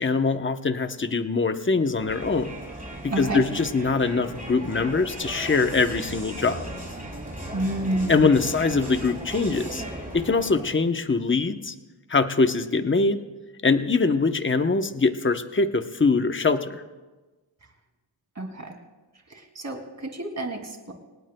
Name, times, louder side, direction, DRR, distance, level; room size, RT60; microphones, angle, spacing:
voice 1, 0.0-2.5 3.0-6.7 8.1-9.8 10.1-11.7 12.1-13.2 13.6-16.8, left 4 dB, 25° left, 8 dB, 0.9 m, -23 dB
Crowd, 2.0-10.8, right 1 dB, 15° right, 5.2 m, -37 dB
voice 2, 3.1-3.4 7.5-8.5 18.4-18.8 19.3-20.9, right 1 dB, 35° right, 2 dB, 2.7 m, -29 dB
26.0 x 18.5 x 2.3 m, 1.2 s
wide cardioid pair, 70°, 48 cm